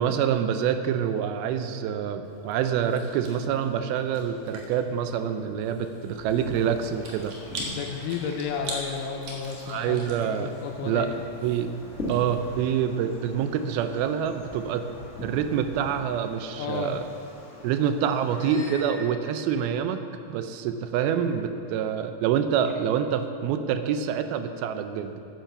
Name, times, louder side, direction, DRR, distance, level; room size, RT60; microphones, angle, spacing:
voice 1, 0.0-7.3 9.7-10.5 10.8-11.1 11.4-11.7 12.0-14.9 15.2-17.0 17.6-25.2, right 8 dB, 85° right, 9 dB, 2.5 m, -26 dB
Chewing mastication, 2.2-12.5, right 1 dB, 60° right, 2.8 m, -43 dB
Wind, 6.2-18.5, left 1 dB, 30° left, 1.3 m, -42 dB
voice 2, 7.7-11.1 16.6-17.0, left 6 dB, 75° left, 2 dB, 2.0 m, -32 dB
sound 1, 17.4-17.6 18.3-19.5 20.1-20.4 21.0-21.2 21.5-21.7 22.7-23.1, left 1 dB, 25° right, 3.6 m, -45 dB
9.5 x 9.2 x 6.7 m, 2.9 s
omnidirectional pair, 4.4 m